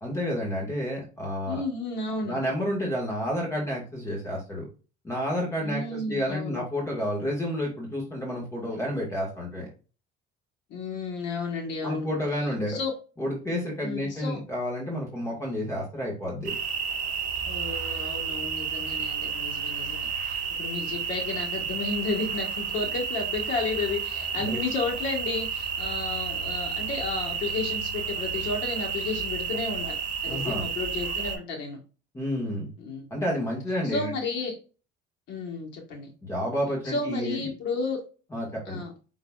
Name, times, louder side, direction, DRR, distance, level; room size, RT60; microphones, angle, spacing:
voice 1, 0.0-1.6 2.2-4.6 5.0-9.7 11.8-12.8 13.2-16.5 24.4-24.6 30.3-30.6 32.1-32.7 33.1-34.1 36.2-37.4 38.3-38.8, equal, 15° left, -2 dB, 1.6 m, -30 dB
voice 2, 1.4-2.4 5.6-6.6 10.7-12.1 12.7-12.9 13.8-14.4 17.4-29.9 30.2-31.8 32.8-33.0 33.8-34.6 35.3-36.1 36.8-38.0 38.7-38.9, left 3 dB, 65° left, 1 dB, 1.4 m, -32 dB
sound 1, 16.4-31.4, right 6 dB, 40° right, 1.5 m, -31 dB
5.3 x 3.8 x 2.3 m, 0.35 s
cardioid pair, 145°, 20 cm